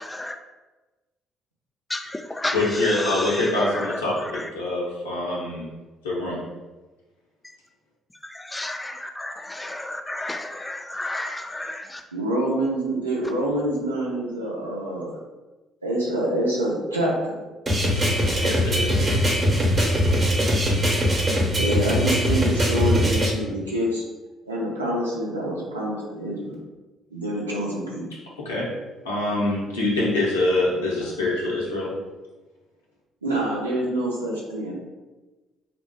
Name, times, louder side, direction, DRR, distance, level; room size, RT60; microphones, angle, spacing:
voice 1, 2.5-5.7 6.0-6.4 18.4-19.1 28.4-28.7 29.0-31.9, left 2 dB, 80° left, 0.7 m, -25 dB
voice 2, 8.5-11.8, left 1 dB, 15° left, 0.4 m, -31 dB
voice 3, 12.1-15.2 15.8-17.4 21.5-24.0 24.4-26.6 27.1-28.0 30.6-30.8 33.2-34.7, right 1 dB, 90° right, 0.6 m, -26 dB
sound 1, 17.7-23.3, equal, 35° right, 0.8 m, -21 dB
2.9 x 2.1 x 4.1 m
figure-of-eight pair, 45°, 0 cm